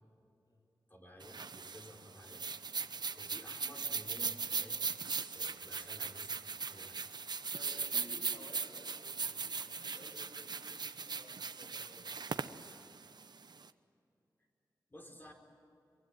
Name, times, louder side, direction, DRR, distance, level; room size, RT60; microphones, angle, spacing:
voice 1, 0.9-2.4 2.8-4.8 5.3-7.0 7.7-8.1 14.9-15.3, equal, 25° left, 1 dB, 5.0 m, -54 dB
sound 1, 1.2-13.7, right 5 dB, 70° right, 0.9 m, -39 dB
voice 2, 7.5-12.3, left 1 dB, 60° left, 1 dB, 7.2 m, -57 dB
24.5 x 23.5 x 9.3 m, 2.7 s
wide cardioid pair, 85°, 8 cm